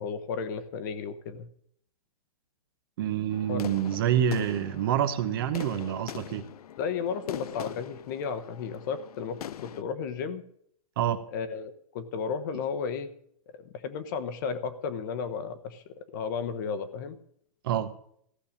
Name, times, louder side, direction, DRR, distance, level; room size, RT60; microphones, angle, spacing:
voice 1, 0.0-1.5 3.5-3.6 6.8-10.4 11.3-13.1 13.5-15.8 16.1-17.2, left 6 dB, 30° left, 1.0 m, -33 dB
voice 2, 3.0-6.5 11.0-11.2 17.6-17.9, right 9 dB, 35° right, 0.9 m, -27 dB
sound 1, 3.3-9.8, left 10 dB, 80° left, 0.7 m, -42 dB
15.0 x 6.7 x 7.2 m
hypercardioid pair, 170°, 19 cm